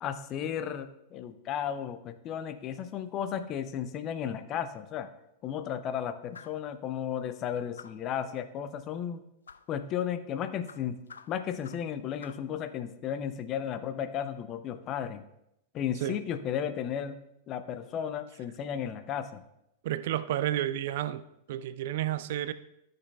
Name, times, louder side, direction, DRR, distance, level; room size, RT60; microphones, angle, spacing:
voice 1, 0.0-5.1 5.4-9.2 9.7-11.0 11.3-15.2 15.7-17.2 17.5-19.4, left 9 dB, 35° left, 11 dB, 0.6 m, -34 dB
sound 1, 6.3-6.7 7.8-8.1 9.5-9.7 10.7-11.9 12.2-12.5, left 6 dB, 75° left, 0.3 m, -50 dB
voice 2, 19.8-21.2 21.5-22.5, right 12 dB, 55° right, 14 dB, 0.4 m, -31 dB
14.0 x 6.6 x 2.4 m, 0.82 s
figure-of-eight pair, 95°, 0 cm